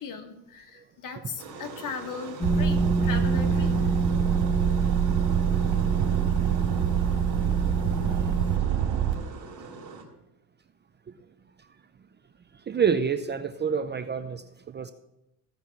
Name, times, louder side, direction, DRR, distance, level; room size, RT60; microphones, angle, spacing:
voice 1, 0.0-4.1, left 5 dB, 45° left, 5 dB, 1.8 m, -38 dB
sound 1, 1.4-10.0, right 4 dB, 45° right, 3.6 m, -42 dB
sound 2, 2.4-8.6, right 2 dB, 10° left, 1.2 m, -28 dB
sound 3, 2.4-9.1, right 10 dB, 65° right, 2.7 m, -26 dB
voice 2, 12.7-14.9, right 7 dB, 25° right, 10 dB, 0.6 m, -27 dB
15.5 x 5.3 x 5.9 m, 0.87 s
supercardioid pair, 95°, 43 cm